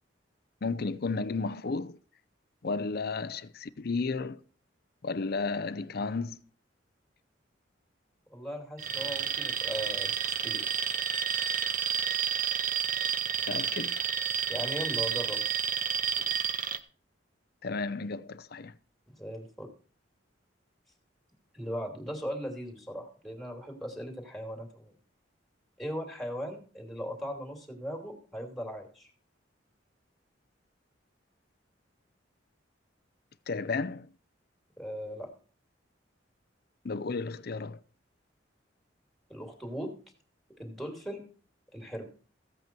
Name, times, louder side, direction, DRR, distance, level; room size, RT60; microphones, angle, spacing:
voice 1, 0.6-2.0 2.6-4.4 5.0-6.4 13.4-14.0 17.6-18.7 33.5-34.1 36.8-37.8, left 4 dB, 55° left, 0.6 m, -33 dB
voice 2, 8.3-10.6 14.5-15.4 19.2-19.7 21.5-24.9 25.8-29.1 34.8-35.3 39.3-39.9 40.6-41.2 41.7-42.1, equal, ahead, 2.7 m, -38 dB
Alarm, 8.8-16.8, right 8 dB, 45° right, 0.8 m, -30 dB
15.0 x 8.3 x 4.5 m
head